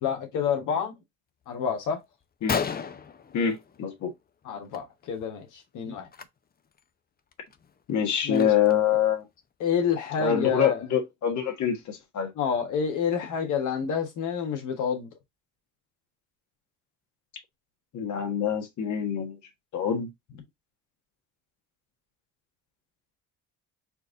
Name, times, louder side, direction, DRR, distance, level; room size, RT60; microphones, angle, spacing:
voice 1, 0.0-0.9 1.5-2.0 4.4-6.1 8.2-8.5 9.6-10.8 12.4-15.1, left 7 dB, 85° left, 1.6 m, -28 dB
Gunshot gunfire, 1.8-1.9 2.2-2.3 2.5-4.1 4.4-4.8 5.0-5.3 6.0-6.2 6.8-6.9 7.3-8.9, left 6 dB, 30° left, 0.6 m, -33 dB
voice 2, 3.3-4.1 7.9-9.2 10.2-12.3 17.9-19.4 19.7-20.1, left 8 dB, 70° left, 1.6 m, -25 dB
4.5 x 2.7 x 3.8 m
cardioid pair, 90°, 30 cm